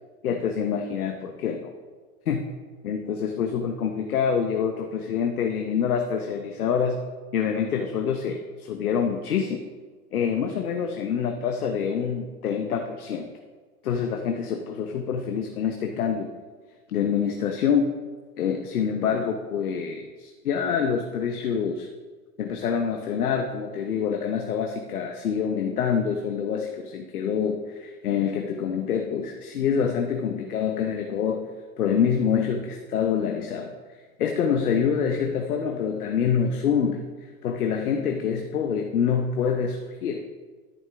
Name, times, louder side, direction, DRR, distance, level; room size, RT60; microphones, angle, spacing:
voice 1, 0.2-1.7 2.3-2.4 2.8-6.9 7.3-9.6 10.1-13.3 13.8-16.3 16.9-17.9 18.4-21.9 22.4-33.8 34.2-40.3, left 7 dB, 75° left, 4 dB, 1.0 m, -26 dB
11.0 x 10.5 x 3.4 m, 1.4 s
hypercardioid pair, 105°, 45 cm